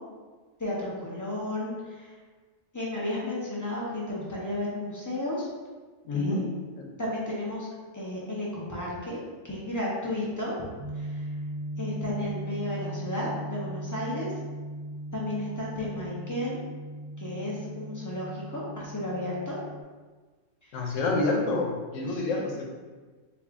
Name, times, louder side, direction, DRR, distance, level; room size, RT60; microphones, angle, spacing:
voice 1, 0.6-2.1 2.7-5.5 6.1-6.4 7.0-7.7 7.9-9.2 9.4-10.6 10.9-11.3 11.8-14.3 15.1-16.6 17.2-19.6 22.0-22.4, left 1 dB, 20° left, -6 dB, 0.5 m, -33 dB
voice 2, 6.0-6.5 6.7-6.8 20.7-22.6, left 3 dB, 90° left, 0 dB, 1.0 m, -28 dB
sound 1, 10.8-19.8, right 1 dB, 65° right, 0.8 m, -38 dB
3.4 x 2.4 x 3.5 m, 1.4 s
omnidirectional pair, 1.3 m